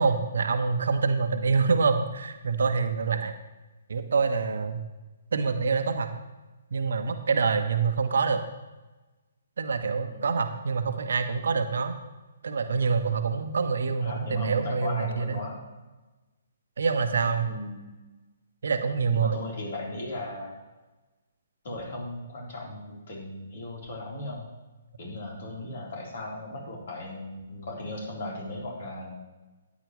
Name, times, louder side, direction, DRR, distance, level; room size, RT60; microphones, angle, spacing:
voice 1, 0.0-3.3 3.9-4.8 5.3-6.1 6.7-8.4 9.6-12.0 12.4-15.4 16.8-17.5 18.6-19.4, right 5 dB, 65° right, 8 dB, 1.0 m, -26 dB
voice 2, 14.0-15.6 17.5-17.9 19.1-20.5 21.6-24.5 25.0-29.1, left 2 dB, 55° left, -2 dB, 3.8 m, -37 dB
13.5 x 9.5 x 3.2 m, 1.1 s
figure-of-eight pair, 130°, 0 cm